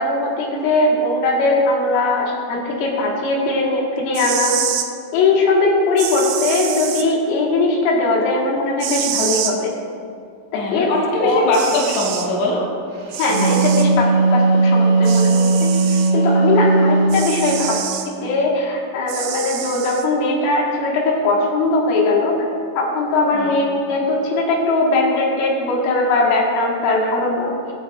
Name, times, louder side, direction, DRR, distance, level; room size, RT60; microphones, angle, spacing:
voice 1, 0.0-4.6 5.1-9.7 10.5-10.9 11.2-11.5 13.2-22.4 22.8-27.5, left 2 dB, 85° left, -2 dB, 4.3 m, -19 dB
sound 1, 4.0-4.9 6.0-7.1 8.8-9.6 11.0-11.1 11.5-12.3 13.1-13.9 15.0-16.1 17.1-18.1 19.1-20.1, right 9 dB, 85° right, 3.0 m, -26 dB
voice 2, 10.5-12.7 23.3-23.6, left 1 dB, 65° left, -5 dB, 3.7 m, -21 dB
Wind instrument woodwind instrument, 13.1-17.3, right 3 dB, 65° right, 3.2 m, -16 dB
23.0 x 8.2 x 2.5 m, 2.4 s
omnidirectional pair, 5.6 m